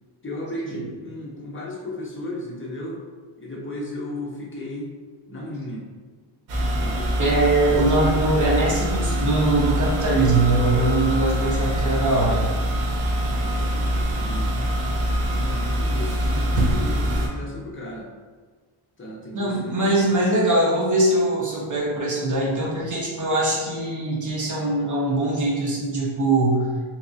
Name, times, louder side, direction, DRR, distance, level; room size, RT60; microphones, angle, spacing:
voice 1, 0.2-3.0 3.4-4.9 5.3-5.8 6.6-7.1 13.4-14.7 15.3-18.1 19.0-20.1, left 1 dB, 25° left, -3 dB, 0.7 m, -35 dB
sound 1, 6.5-17.3, equal, 85° right, 0.8 m, -24 dB
voice 2, 7.2-12.4 19.3-26.7, right 2 dB, 35° right, -5 dB, 1.1 m, -22 dB
3.5 x 2.9 x 2.7 m, 1.5 s
wide cardioid pair, 110°, 50 cm